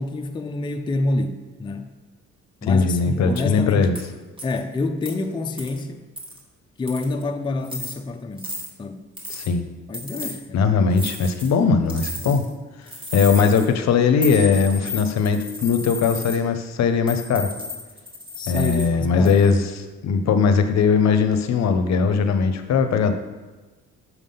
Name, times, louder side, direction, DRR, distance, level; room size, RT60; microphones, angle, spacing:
voice 1, 0.0-1.9 2.6-3.9 4.4-6.0 6.8-8.5 8.8-9.0 9.9-10.7 18.4-19.4, left 2 dB, 15° left, 6 dB, 0.4 m, -27 dB
voice 2, 2.6-4.0 9.3-9.6 10.5-12.4 13.1-17.5 18.5-19.6 20.0-23.1, left 5 dB, 60° left, 8 dB, 0.7 m, -19 dB
sound 1, 3.3-3.5 3.9-4.1 4.4-4.6 5.0-5.1 5.6-5.8 6.2-6.4 6.9-7.2 7.6-7.9 8.4-8.7 9.2-9.5 9.9-10.4 10.9-11.5 11.9-12.5 12.9-13.7 14.2-16.4 17.1-18.9 19.2-19.6, left 2 dB, 15° right, 1.3 m, -33 dB
6.0 x 3.6 x 5.5 m, 1.2 s
cardioid pair, 90°, 30 cm